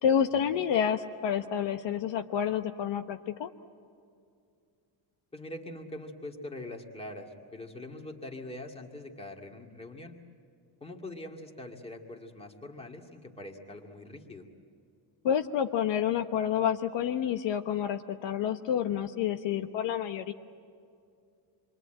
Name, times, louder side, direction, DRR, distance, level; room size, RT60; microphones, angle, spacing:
voice 1, 0.0-3.5 15.2-20.3, left 8 dB, 65° left, 7 dB, 1.1 m, -29 dB
voice 2, 5.3-10.1 10.8-14.5, left 1 dB, 10° left, 2 dB, 2.2 m, -43 dB
27.5 x 23.0 x 9.0 m, 2.4 s
cardioid pair, 170°, 48 cm